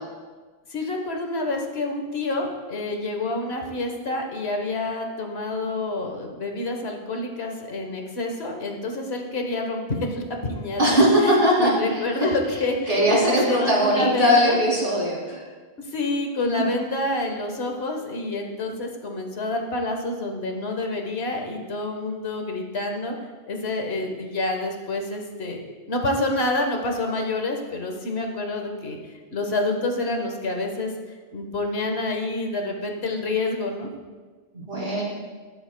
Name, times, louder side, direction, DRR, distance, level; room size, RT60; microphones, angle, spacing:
voice 1, 0.7-14.6 15.8-23.1 23.5-25.6 25.9-29.0 29.3-30.9 31.3-33.9, left 2 dB, 85° left, 3 dB, 1.5 m, -28 dB
voice 2, 10.8-11.7 12.9-15.4 16.5-16.7 34.5-35.0, equal, 60° right, -5 dB, 3.0 m, -20 dB
20.0 x 7.9 x 2.2 m, 1.4 s
omnidirectional pair, 1.0 m